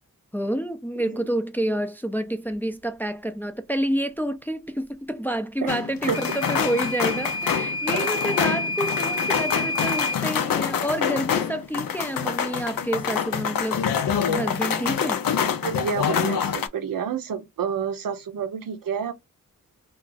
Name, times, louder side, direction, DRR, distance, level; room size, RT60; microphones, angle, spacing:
voice 1, 0.3-15.2, right 1 dB, 5° left, 0.3 m, -28 dB
sound 1, 5.7-16.7, left 7 dB, 85° left, 0.5 m, -26 dB
Microwave oven / Alarm, 6.1-10.2, left 1 dB, 40° right, 0.6 m, -29 dB
voice 2, 15.6-19.1, right 7 dB, 80° right, 0.6 m, -29 dB
2.4 x 2.4 x 3.8 m
wide cardioid pair, 80°, 33 cm